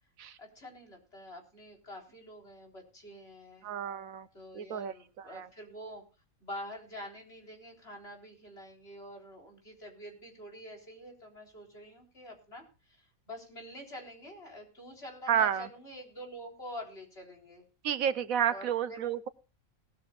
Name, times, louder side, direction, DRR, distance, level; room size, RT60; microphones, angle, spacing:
voice 1, 0.4-3.7 4.3-6.0 6.4-17.6 18.5-19.1, equal, 45° left, 0 dB, 4.2 m, -47 dB
voice 2, 3.6-4.3 4.5-4.9 5.3-5.5 15.3-15.7 17.8-19.3, right 9 dB, 80° right, 13 dB, 1.3 m, -30 dB
18.5 x 13.0 x 2.4 m, 0.34 s
omnidirectional pair, 1.4 m